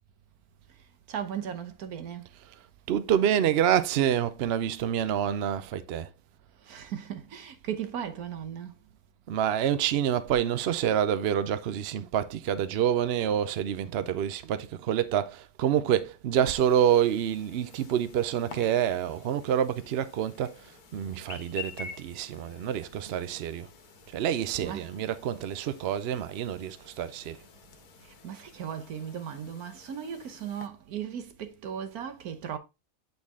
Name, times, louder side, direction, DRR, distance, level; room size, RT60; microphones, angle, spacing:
voice 1, 1.1-2.3 6.6-8.8 24.6-25.0 28.0-32.6, right 8 dB, 80° right, 1.4 m, -37 dB
voice 2, 2.9-6.1 9.3-20.6 20.9-23.7 24.1-27.4, right 10 dB, 60° right, 0.6 m, -27 dB
Chirp tweet, 16.5-30.7, left 6 dB, 85° left, 1.4 m, -49 dB
8.3 x 4.0 x 3.6 m
omnidirectional pair, 1.6 m